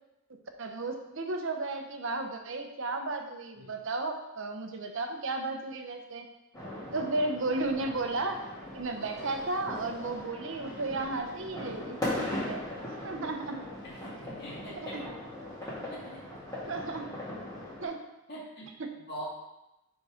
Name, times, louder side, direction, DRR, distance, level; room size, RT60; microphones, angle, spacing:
voice 1, 0.6-6.3 6.9-8.4 8.7-13.6 14.8-15.0 16.7-17.1 17.8-18.0 18.8-18.9, right 2 dB, 60° right, 5 dB, 0.8 m, -34 dB
sound 1, 6.5-17.8, left 1 dB, 15° left, 2.2 m, -39 dB
voice 2, 13.8-15.0 15.6-16.2 18.3-18.7 19.1-19.2, equal, 50° left, -6 dB, 2.1 m, -44 dB
5.6 x 5.2 x 5.0 m, 0.93 s
head